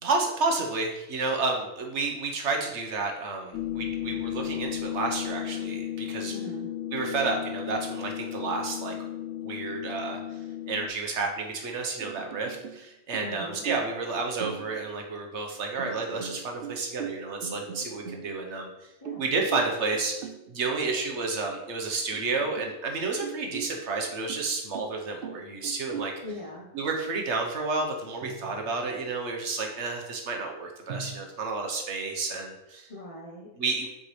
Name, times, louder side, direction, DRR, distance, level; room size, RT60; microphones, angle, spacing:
voice 1, 0.0-6.3 6.9-8.9 9.4-10.2 10.7-18.7 19.2-26.1 26.7-32.9 33.6-33.9, right 3 dB, 55° right, 2 dB, 1.2 m, -31 dB
sound 1, 3.5-10.9, left 12 dB, 65° left, 0.6 m, -34 dB
voice 2, 6.3-6.7 13.2-13.6 19.0-19.2 26.2-26.7 32.9-33.5, equal, 30° left, -3 dB, 0.8 m, -40 dB
sound 2, 12.0-12.9 13.1-14.1 14.4-15.1 15.8-18.6 19.1-20.5 21.2-21.3 21.6-21.7 22.1-22.8 23.2-26.3 28.2-29.0 30.9-31.2, right 7 dB, 80° right, 0.5 m, -41 dB
7.4 x 4.5 x 3.3 m, 0.95 s
omnidirectional pair, 1.5 m